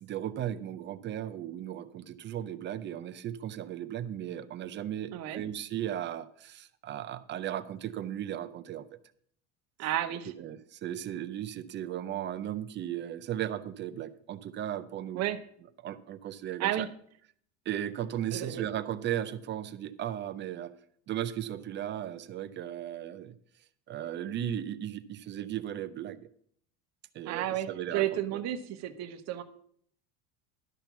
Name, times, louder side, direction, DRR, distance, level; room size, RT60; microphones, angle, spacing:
voice 1, 0.0-9.0 10.4-15.2 15.8-16.9 17.7-20.7 21.1-23.4 23.9-26.3 27.1-28.4, right 11 dB, 30° right, 13 dB, 0.5 m, -36 dB
voice 2, 9.8-10.3 15.1-15.4 16.6-16.9 18.3-18.6 27.3-29.4, right 12 dB, 50° right, 9 dB, 0.9 m, -32 dB
12.0 x 4.4 x 6.9 m, 0.62 s
cardioid pair, 135°, 35 cm